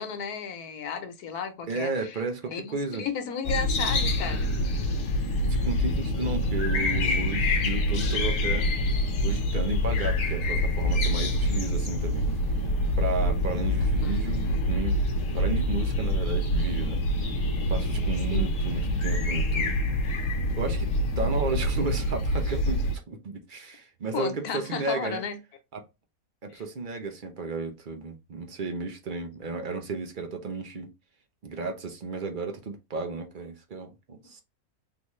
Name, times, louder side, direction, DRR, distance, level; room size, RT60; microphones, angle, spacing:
voice 1, 0.0-2.2 2.5-4.5 13.8-14.2 18.3-18.5 21.2-21.3 24.1-25.4 26.5-26.6, left 6 dB, 90° left, 1.3 m, -34 dB
voice 2, 1.7-3.0 5.5-8.7 9.2-12.3 12.6-12.7 13.0-15.0 15.3-17.0 17.7-19.8 20.5-25.2 25.7-25.8 26.4-30.9 31.4-34.4, right 3 dB, 45° right, 0.7 m, -33 dB
sound 1, 3.4-23.0, left 1 dB, 65° left, 1.3 m, -26 dB
4.0 x 2.6 x 3.0 m
omnidirectional pair, 1.6 m